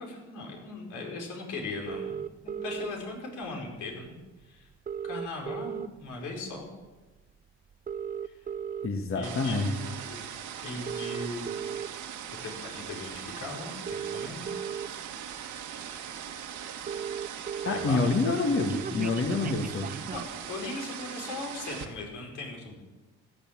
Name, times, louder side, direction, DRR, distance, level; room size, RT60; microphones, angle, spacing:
voice 1, 0.0-2.2 2.4-4.2 4.4-4.7 5.0-6.7 8.2-8.4 9.1-10.2 10.6-11.5 12.4-14.5 17.7-18.2 20.1-22.8, left 3 dB, 85° left, 1 dB, 5.0 m, -38 dB
sound 1, 1.9-2.9 4.1-4.2 4.4-4.5 4.7-6.2 6.6-6.9 7.7-8.9 9.6-9.8 10.7-11.9 13.1-13.2 13.7-14.9 15.6-15.7 15.9-16.0 16.3-16.4 16.6-17.9 18.2-20.4, right 7 dB, 30° right, 0.5 m, -36 dB
voice 2, 8.8-9.7 17.6-19.9, left 3 dB, 45° left, 3 dB, 1.8 m, -27 dB
sound 2, 9.2-21.9, right 9 dB, 80° right, 1.9 m, -40 dB
16.0 x 10.5 x 7.4 m, 1.2 s
cardioid pair, 90°, 30 cm